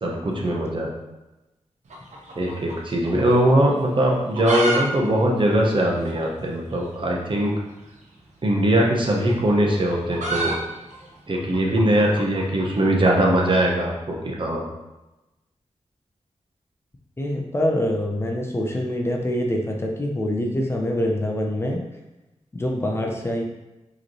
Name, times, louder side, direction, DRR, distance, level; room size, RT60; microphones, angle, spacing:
voice 1, 0.0-0.9 2.4-7.5 8.4-10.5 11.3-14.6, right 1 dB, 45° right, -1 dB, 0.9 m, -21 dB
sound 1, 1.9-3.2 3.5-3.6 4.1-4.8 5.1-5.2 5.4-5.5 6.1-6.2 7.4-7.6 8.7-12.9, right 2 dB, 85° right, 0.9 m, -29 dB
voice 2, 17.2-21.8 22.5-23.4, left 1 dB, 20° left, 0 dB, 0.6 m, -25 dB
4.9 x 3.1 x 3.0 m, 1.0 s
wide cardioid pair, 80°, 12 cm